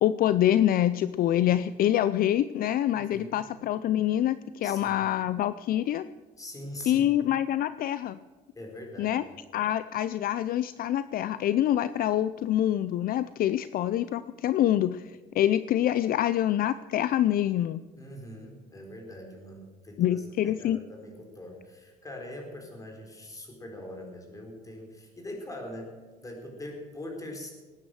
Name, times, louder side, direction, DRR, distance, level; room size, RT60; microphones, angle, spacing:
voice 1, 0.0-6.1 6.9-8.2 9.0-9.2 9.5-17.8 20.0-20.8, left 12 dB, 60° left, 14 dB, 0.5 m, -26 dB
voice 2, 2.9-3.4 4.6-5.1 6.4-7.0 8.5-9.2 18.0-27.5, left 1 dB, 20° left, 2 dB, 4.3 m, -42 dB
18.5 x 9.8 x 6.3 m, 1.3 s
cardioid pair, 110°, 17 cm